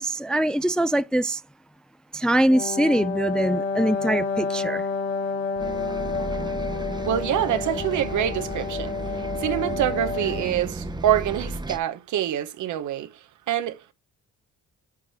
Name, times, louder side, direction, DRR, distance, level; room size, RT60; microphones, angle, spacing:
voice 1, 0.0-1.4 2.1-4.8, right 1 dB, 5° left, 0.3 m, -23 dB
Wind instrument woodwind instrument, 2.5-10.6, left 4 dB, 50° left, 2.2 m, -29 dB
Bus, 5.6-11.8, right 2 dB, 15° right, 0.8 m, -34 dB
voice 2, 7.1-8.9 9.4-13.9, right 11 dB, 75° right, 1.1 m, -26 dB
7.3 x 3.2 x 5.8 m
cardioid pair, 90°, 30 cm